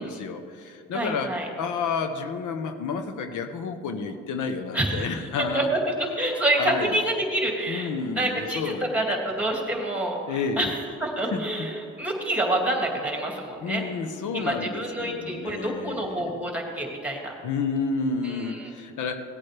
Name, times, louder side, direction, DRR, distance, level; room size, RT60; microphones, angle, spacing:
voice 1, 0.0-1.3 1.6-5.7 6.6-7.0 7.7-9.0 10.3-10.7 11.3-11.7 13.6-16.4 17.4-19.2, left 5 dB, 80° left, 7 dB, 0.9 m, -30 dB
voice 2, 0.9-1.5 4.7-5.1 5.5-5.8 6.2-7.9 8.1-13.8 14.3-17.3 18.2-18.7, right 1 dB, 5° right, 0 dB, 2.3 m, -27 dB
17.5 x 8.6 x 3.3 m, 2.3 s
cardioid pair, 90°, 30 cm